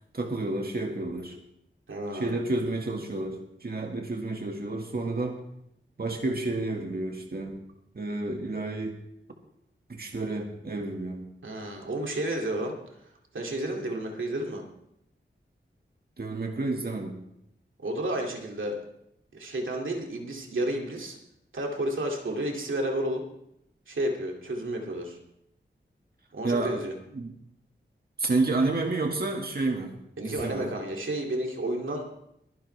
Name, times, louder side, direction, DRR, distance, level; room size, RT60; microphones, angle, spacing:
voice 1, 0.0-1.4 2.1-5.4 6.0-7.6 8.0-9.0 9.9-11.3 16.2-17.2 26.4-26.8 27.2-27.3 28.2-30.7, right 2 dB, 50° right, 2 dB, 1.7 m, -30 dB
voice 2, 1.9-2.4 11.4-12.7 13.3-14.6 17.8-18.8 19.3-21.2 21.5-23.2 23.9-25.2 26.3-26.9 30.2-32.0, right 1 dB, 90° right, 1 dB, 2.5 m, -31 dB
22.5 x 10.5 x 3.3 m, 0.77 s
wide cardioid pair, 80°, 20 cm